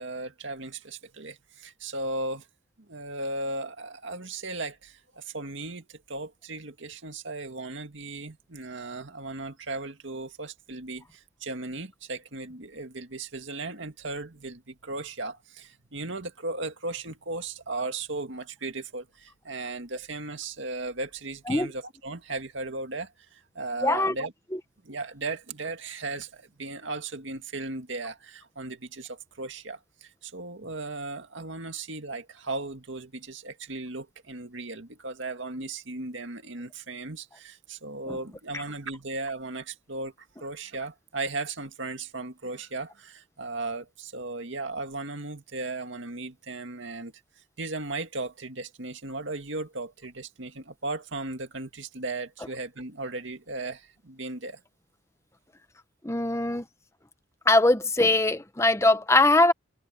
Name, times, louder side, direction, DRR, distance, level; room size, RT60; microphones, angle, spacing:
voice 1, 0.0-2.5 2.9-24.3 24.8-40.1 40.4-47.1 47.6-54.6, right 2 dB, 70° right, 2.1 m, -36 dB
voice 2, 23.8-24.1 38.5-38.6 56.0-56.6 57.5-59.5, left 2 dB, 15° left, 1.0 m, -21 dB
head